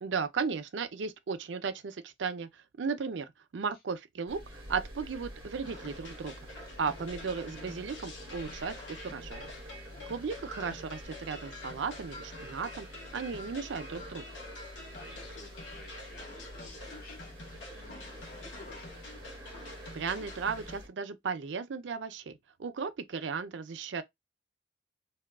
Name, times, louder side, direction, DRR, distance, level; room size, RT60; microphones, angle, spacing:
voice 1, 0.0-4.4 4.7-6.4 6.8-9.5 10.1-12.9 13.1-14.2 19.9-24.0, right 5 dB, 80° right, 0.5 m, -35 dB
sound 1, 4.3-20.9, equal, 25° right, 1.0 m, -48 dB
sound 2, 5.6-20.8, left 2 dB, 90° left, 1.1 m, -47 dB
voice 2, 9.7-10.0 14.9-19.0, left 3 dB, 50° left, 0.9 m, -53 dB
2.8 x 2.3 x 2.2 m
head